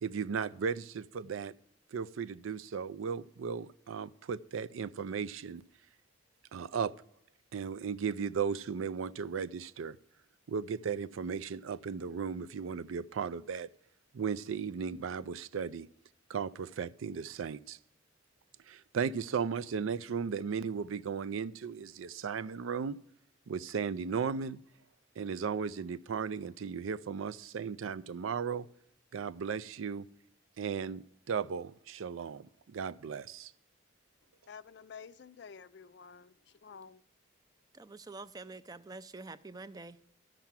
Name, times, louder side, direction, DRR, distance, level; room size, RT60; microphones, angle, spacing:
voice 1, 0.0-1.5 1.9-5.6 6.5-6.9 7.5-10.0 10.5-13.7 14.1-15.9 16.3-17.8 18.7-23.0 23.5-24.6 25.2-28.7 29.1-30.1 30.6-33.5, right 6 dB, 85° right, 0.4 m, -36 dB
voice 2, 34.5-36.3 36.6-37.0, left 6 dB, 55° left, 0.4 m, -50 dB
voice 3, 37.8-39.9, right 3 dB, 20° right, 0.4 m, -46 dB
12.0 x 5.9 x 7.3 m
head